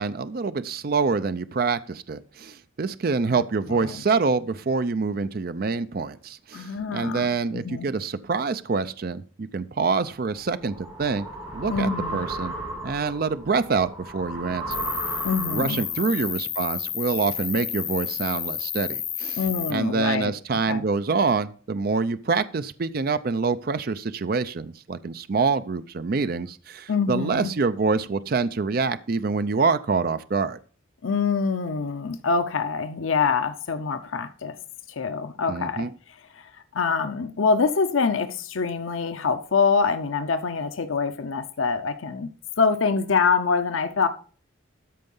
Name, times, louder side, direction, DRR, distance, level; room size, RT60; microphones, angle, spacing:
voice 1, 0.0-11.3 11.5-12.5 12.8-14.8 15.5-19.4 19.7-30.6 35.5-35.9, right 4 dB, 50° right, 0.5 m, -26 dB
voice 2, 3.3-4.0 6.5-7.9 11.7-12.2 15.2-15.8 19.4-20.3 20.7-20.8 26.9-27.5 31.0-34.6 34.9-35.9 36.3-42.3 42.6-44.1, left 5 dB, 85° left, 0.7 m, -25 dB
sound 1, 10.1-15.9, right 2 dB, 25° right, 2.8 m, -35 dB
Cricket, 14.7-19.7, left 9 dB, 25° left, 0.6 m, -31 dB
13.0 x 4.6 x 5.4 m
head